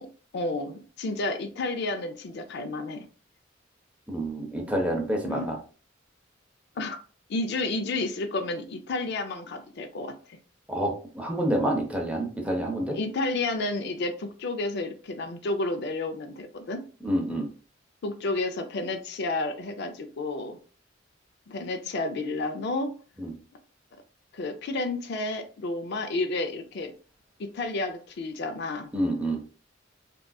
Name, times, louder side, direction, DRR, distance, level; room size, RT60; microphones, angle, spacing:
voice 1, 0.0-3.0 5.2-5.6 6.8-7.0 7.3-10.4 12.9-16.9 18.0-20.6 21.5-23.0 24.3-26.9 27.4-28.9, left 2 dB, 60° left, 8 dB, 0.4 m, -31 dB
voice 2, 4.1-5.6 10.7-13.0 17.0-17.5 23.2-23.3 28.9-29.4, right 1 dB, 5° right, 1 dB, 0.6 m, -28 dB
3.6 x 2.4 x 2.2 m, 0.38 s
head